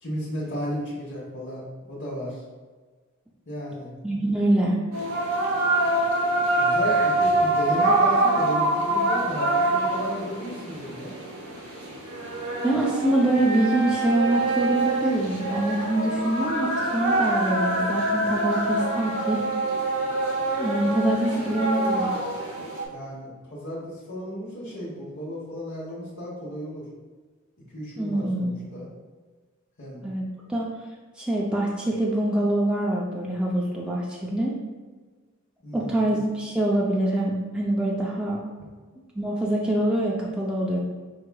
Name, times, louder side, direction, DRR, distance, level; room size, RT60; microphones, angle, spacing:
voice 1, 0.0-1.6 1.9-2.4 3.5-3.9 6.6-11.1 22.9-26.8 27.7-28.9 29.8-30.0 35.6-36.1, equal, 60° left, -6 dB, 1.1 m, -34 dB
voice 2, 4.0-4.8 12.6-19.5 20.5-22.1 28.0-28.8 30.0-30.2 30.5-30.7 31.2-34.6 35.7-38.4 39.2-40.8, right 1 dB, 5° right, -4 dB, 0.4 m, -25 dB
sound 1, 4.9-22.9, right 2 dB, 85° right, 1.0 m, -25 dB
4.7 x 4.6 x 2.2 m, 1.4 s
head